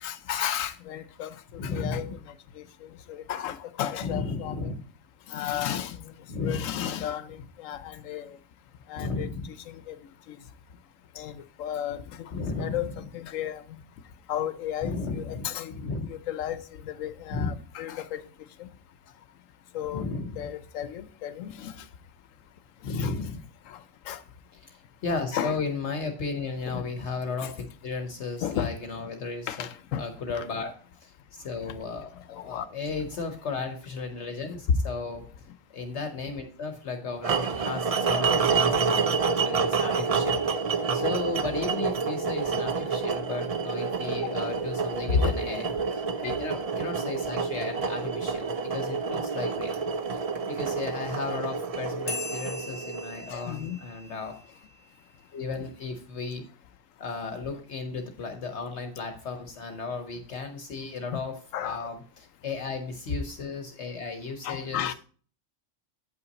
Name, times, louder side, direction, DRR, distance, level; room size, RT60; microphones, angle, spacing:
voice 1, 0.0-1.3 1.6-2.1 2.6-2.7 3.1-4.7 5.3-6.0 6.4-8.3 8.9-9.3 9.7-10.0 10.3-10.4 11.2-13.6 14.3-15.7 16.1-18.2 18.6-18.7 19.7-21.7 22.9-23.1 23.7-23.8 24.1-24.2 25.3-25.6 26.7-26.8 27.4-27.5 28.4-28.7 29.5-30.1 32.3-32.7 33.0-33.1 34.7-34.8 45.1-45.3 46.2-46.4 53.3-53.8 61.1-61.2 61.5-61.9 64.4-64.9, left 8 dB, 85° left, 1.0 m, -33 dB
voice 2, 1.6-2.0 4.0-4.8 6.3-6.7 9.0-9.5 12.3-12.8 14.8-16.1 17.3-17.5 19.9-20.4 22.8-23.4 24.6-29.7 30.0-30.7 31.0-35.2 35.7-39.2 39.4-49.8 50.4-54.3 55.3-56.4 57.0-61.3 61.6-64.9, left 4 dB, 65° left, 1.2 m, -34 dB
sound 1, 37.2-53.3, right 5 dB, 60° right, 0.3 m, -28 dB
sound 2, 52.1-55.1, left 3 dB, 40° left, 1.4 m, -41 dB
8.7 x 5.6 x 4.0 m
omnidirectional pair, 1.3 m